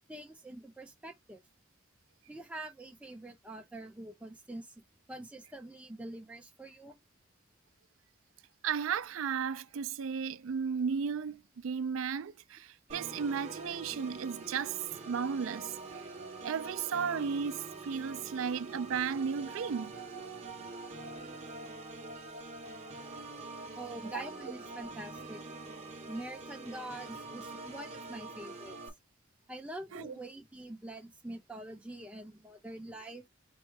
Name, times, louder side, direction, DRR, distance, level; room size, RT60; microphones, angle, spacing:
voice 1, 0.1-1.4 2.3-4.7 5.1-7.0 23.8-25.4 26.1-28.8 29.5-33.2, right 1 dB, 5° right, 0.8 m, -45 dB
voice 2, 8.6-16.1 16.4-19.9 24.1-24.3 29.9-30.1, right 6 dB, 90° right, 0.4 m, -34 dB
Organ, 12.9-28.9, right 3 dB, 35° right, 1.0 m, -45 dB
4.5 x 2.2 x 4.6 m
head